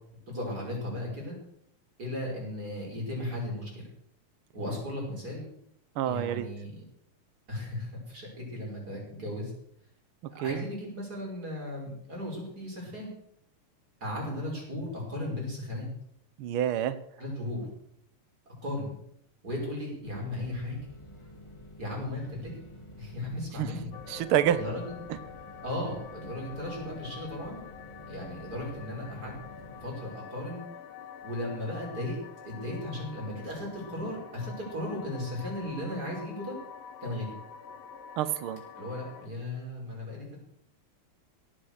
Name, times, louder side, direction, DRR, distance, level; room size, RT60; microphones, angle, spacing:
voice 1, 0.3-1.3 2.0-3.9 4.5-5.4 6.0-6.7 7.5-9.5 10.3-13.1 14.0-15.9 17.2-17.7 18.6-19.0 19.4-20.8 21.8-22.5 23.0-23.9 24.5-24.9 25.6-27.7 28.1-29.3 29.8-30.6 31.2-32.2 32.4-36.5 37.0-37.3 38.7-40.4, left 1 dB, 30° right, -2 dB, 6.3 m, -36 dB
voice 2, 6.0-6.5 10.4-10.6 14.3-14.4 16.4-17.0 23.6-23.7 24.1-24.6 38.2-38.6, right 11 dB, 85° right, 13 dB, 1.1 m, -27 dB
sound 1, 20.0-29.9, equal, 15° left, 1.1 m, -49 dB
sound 2, 23.9-39.3, left 7 dB, 65° left, 2.2 m, -47 dB
17.0 x 10.0 x 6.5 m, 0.71 s
omnidirectional pair, 3.4 m